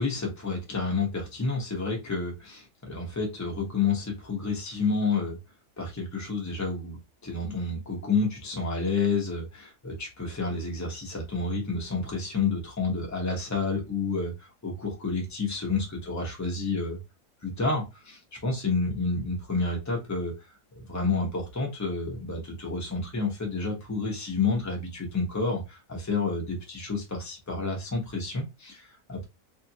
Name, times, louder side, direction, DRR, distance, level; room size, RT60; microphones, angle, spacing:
voice 1, 0.0-5.4 5.8-17.0 17.6-20.3 20.7-29.3, left 3 dB, 15° left, 0 dB, 0.6 m, -30 dB
2.7 x 2.5 x 2.7 m, 0.24 s
omnidirectional pair, 1.6 m